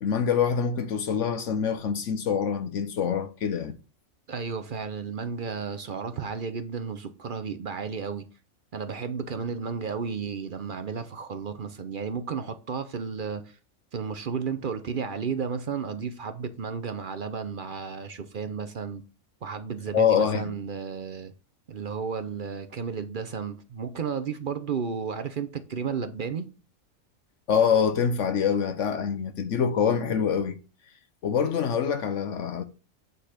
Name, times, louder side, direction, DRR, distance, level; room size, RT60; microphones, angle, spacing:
voice 1, 0.0-3.7 19.9-20.5 27.5-30.6 31.2-32.6, left 7 dB, 65° left, 1.0 m, -25 dB
voice 2, 4.3-8.3 8.7-13.6 13.9-19.0 19.4-21.3 21.7-26.5, right 6 dB, 50° right, 0.7 m, -33 dB
8.9 x 4.0 x 4.9 m
omnidirectional pair, 1.4 m